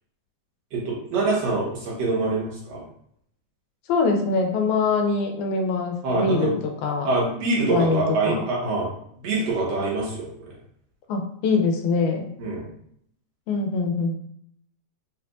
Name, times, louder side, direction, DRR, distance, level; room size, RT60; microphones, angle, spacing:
voice 1, 0.7-2.8 6.0-6.5 7.1-8.9 9.2-10.5 12.4-12.7, right 3 dB, 65° right, -4 dB, 2.4 m, -25 dB
voice 2, 3.9-7.1 7.6-8.4 11.1-12.3 13.5-14.1, left 4 dB, 85° left, 2 dB, 2.1 m, -23 dB
5.2 x 3.3 x 2.5 m, 0.68 s
omnidirectional pair, 3.4 m